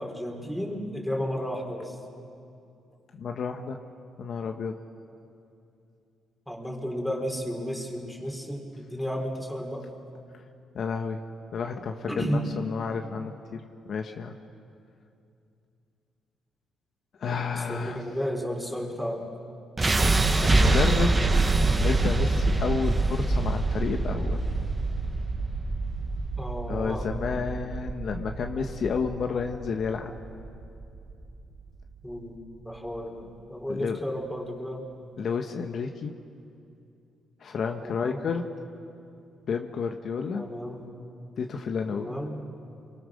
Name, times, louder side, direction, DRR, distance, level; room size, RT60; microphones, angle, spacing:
voice 1, 0.0-2.0 6.5-9.9 12.1-12.5 17.5-19.3 26.4-27.1 32.0-32.4 32.6-34.8 37.8-38.3 40.3-40.9 41.9-42.4, equal, ahead, 1 dB, 4.2 m, -33 dB
voice 2, 3.1-3.8 4.2-4.8 10.7-11.2 11.5-14.4 17.2-18.0 20.4-24.5 26.7-30.1 33.7-34.0 35.2-36.1 37.4-38.5 39.5-40.4 41.4-42.2, left 5 dB, 55° left, 4 dB, 1.3 m, -31 dB
double-explosion bright & dark, 19.8-31.8, right 2 dB, 25° right, 1.7 m, -25 dB
28.0 x 23.0 x 6.5 m, 2.6 s
cardioid pair, 90°, 0 cm